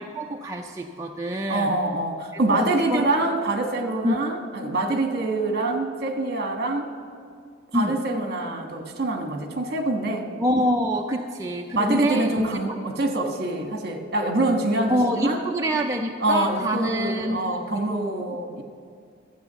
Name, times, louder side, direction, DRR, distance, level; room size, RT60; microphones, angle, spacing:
voice 1, 0.0-1.8 2.3-3.1 4.0-4.2 7.7-8.0 10.4-12.8 14.9-18.4, equal, 15° right, 1 dB, 0.4 m, -27 dB
voice 2, 1.5-6.9 7.7-10.3 11.7-15.4 16.2-18.6, right 2 dB, 50° right, 4 dB, 1.3 m, -25 dB
13.0 x 8.0 x 6.8 m, 2.2 s
head